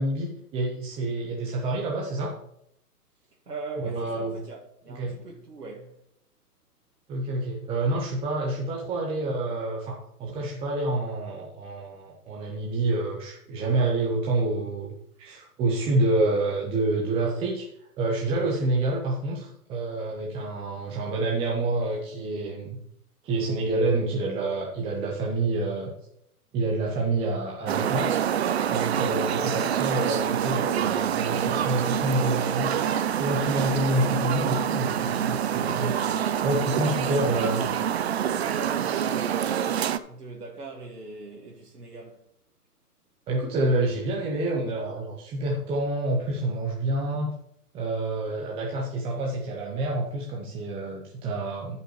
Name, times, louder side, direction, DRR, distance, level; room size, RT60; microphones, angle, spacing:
voice 1, 0.0-2.3 3.8-4.3 4.9-5.1 7.1-17.7 18.0-22.8 23.2-25.9 26.5-28.1 28.7-32.7 33.1-35.9 36.4-37.7 43.3-47.3 47.7-51.8, right 2 dB, 10° right, 0.8 m, -28 dB
voice 2, 3.5-6.0 36.7-37.5 38.2-39.8 40.1-42.2, right 3 dB, 85° right, 1.9 m, -41 dB
sound 1, 27.7-40.0, right 9 dB, 45° right, 0.5 m, -26 dB
14.5 x 5.6 x 3.2 m
hypercardioid pair, 135°, 46 cm